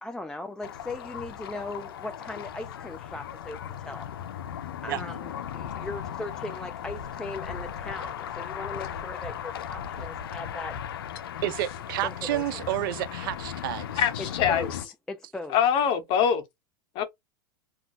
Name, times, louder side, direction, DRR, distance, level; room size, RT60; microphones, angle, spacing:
voice 1, 0.0-4.1 4.8-10.8 12.0-12.7 14.2-14.7 15.1-15.6, left 2 dB, 5° left, 0.3 m, -38 dB
sound 1, 0.6-14.9, left 9 dB, 85° left, 0.5 m, -37 dB
voice 2, 11.4-14.0, right 14 dB, 70° right, 0.4 m, -30 dB
voice 3, 14.0-14.7 15.5-16.4 16.9-17.0, left 8 dB, 45° left, 0.9 m, -23 dB
2.4 x 2.2 x 3.7 m
hypercardioid pair, 120°, 12 cm